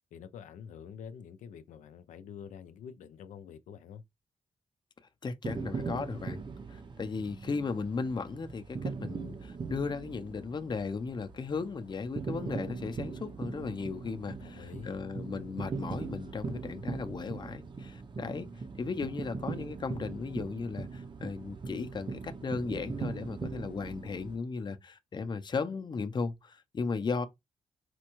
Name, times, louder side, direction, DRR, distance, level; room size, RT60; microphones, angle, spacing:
voice 1, 0.1-4.0 14.4-15.0, left 7 dB, 90° left, 0.4 m, -47 dB
voice 2, 5.2-6.4 6.7-18.5 18.7-27.3, left 4 dB, 35° left, 0.5 m, -36 dB
sound 1, 5.4-24.4, right 4 dB, 40° right, 0.6 m, -40 dB
4.2 x 2.2 x 3.0 m
cardioid pair, 70°, 13 cm